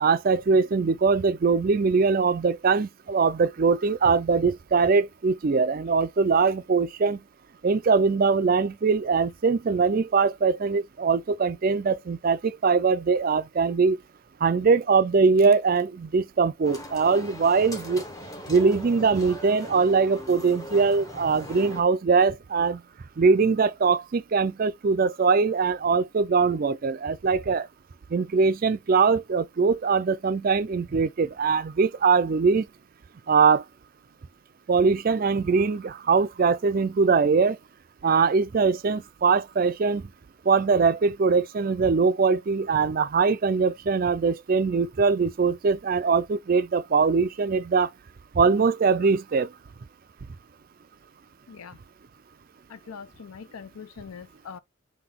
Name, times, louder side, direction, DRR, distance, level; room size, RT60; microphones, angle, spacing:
voice 1, 0.0-7.2 7.6-14.0 14.4-18.0 18.5-22.8 23.2-27.7 28.1-32.7 33.3-33.6 34.7-37.6 38.0-40.1 40.5-47.9 48.3-49.5, right 5 dB, 40° right, 0.4 m, -22 dB
sound 1, 16.6-21.8, left 1 dB, 15° left, 0.8 m, -40 dB
voice 2, 52.7-54.6, left 6 dB, 80° left, 0.5 m, -42 dB
5.9 x 2.3 x 3.5 m
head